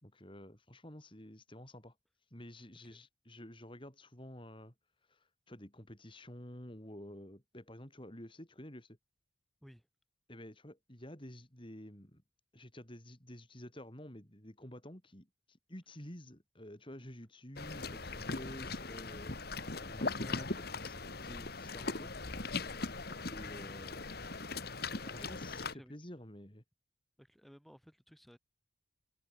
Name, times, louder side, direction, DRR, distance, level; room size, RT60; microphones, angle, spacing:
voice 1, 0.0-2.0 2.3-4.7 5.1-9.0 10.3-12.2 12.5-19.4 19.7-22.1 23.3-24.1 24.9-26.6, left 1 dB, 25° left, 4.1 m, -50 dB
sound 1, 17.6-25.7, left 3 dB, 55° left, 2.1 m, -40 dB
voice 2, 24.8-26.1 27.2-28.4, equal, ahead, 5.0 m, -58 dB
head